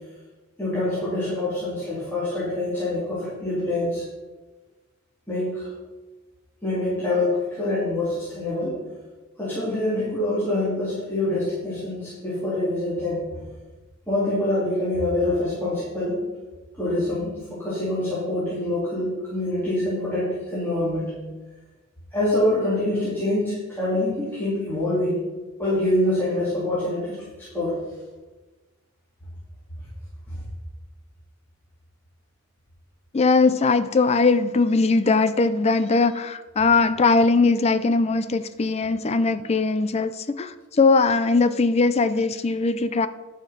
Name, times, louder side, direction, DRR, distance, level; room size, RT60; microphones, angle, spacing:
voice 1, 0.6-4.0 5.3-5.7 6.6-8.8 9.4-13.3 14.1-16.2 16.7-21.1 22.1-25.3 25.6-27.8 30.3-30.4, left 1 dB, 10° left, -10 dB, 3.1 m, -25 dB
voice 2, 33.1-40.5 40.8-43.1, left 3 dB, 30° left, 13 dB, 0.4 m, -20 dB
11.5 x 5.9 x 5.9 m, 1.2 s
head